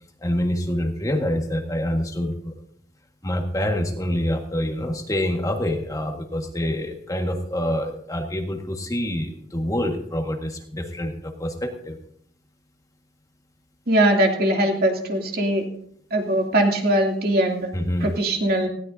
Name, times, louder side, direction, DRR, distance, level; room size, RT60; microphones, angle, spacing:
voice 1, 0.2-2.5 3.2-12.0 17.7-18.1, left 1 dB, 20° left, 3 dB, 1.7 m, -26 dB
voice 2, 13.9-15.6 16.1-17.7 18.0-18.7, right 1 dB, 55° right, 1 dB, 2.8 m, -21 dB
19.5 x 16.5 x 2.8 m, 0.67 s
head